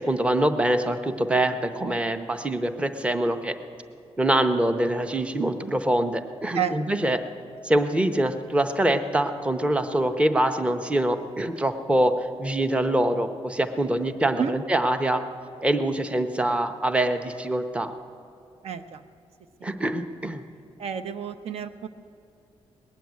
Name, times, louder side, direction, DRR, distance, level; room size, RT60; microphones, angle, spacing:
voice 1, 0.1-3.5 4.2-7.2 7.6-15.2 15.6-17.9 19.6-20.4, right 1 dB, 10° right, 8 dB, 0.7 m, -24 dB
voice 2, 18.6-19.0 19.6-19.7 20.8-21.9, right 8 dB, 70° right, 10 dB, 0.6 m, -30 dB
20.0 x 7.6 x 9.3 m, 2.6 s
wide cardioid pair, 140°, 11 cm